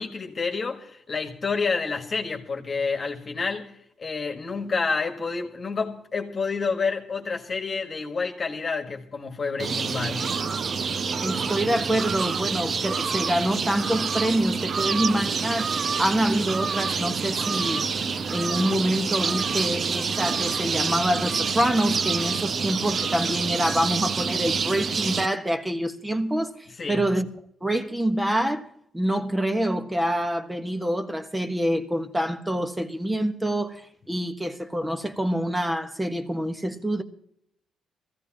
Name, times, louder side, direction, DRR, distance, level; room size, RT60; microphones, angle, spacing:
voice 1, 0.0-10.3 26.8-27.2, left 4 dB, 35° left, 1.9 m, -29 dB
sound 1, 9.6-25.3, right 5 dB, 45° right, 0.6 m, -27 dB
voice 2, 11.2-17.9 18.3-26.5 26.9-27.3 27.6-28.7 28.9-37.0, right 1 dB, 10° right, 1.4 m, -26 dB
20.5 x 16.0 x 3.0 m
cardioid pair, 90°, 0 cm